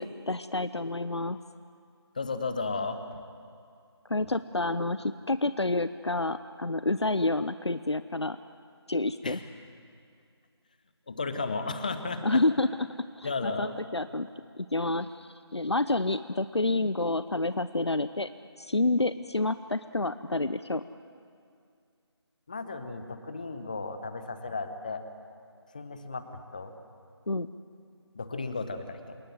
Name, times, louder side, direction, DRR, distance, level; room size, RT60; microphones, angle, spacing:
voice 1, 0.0-1.4 4.1-8.4 8.9-9.4 12.2-12.7 13.2-14.3 14.6-18.3 18.6-20.8 27.3-27.5, left 2 dB, 70° left, 13 dB, 0.8 m, -29 dB
voice 2, 2.1-3.0 9.2-9.4 11.1-12.4 13.2-13.8 22.5-25.0 25.7-26.2 26.5-26.7 28.1-29.2, left 3 dB, 15° left, 9 dB, 0.9 m, -34 dB
28.0 x 19.0 x 7.6 m, 2.3 s
figure-of-eight pair, 165°, 14 cm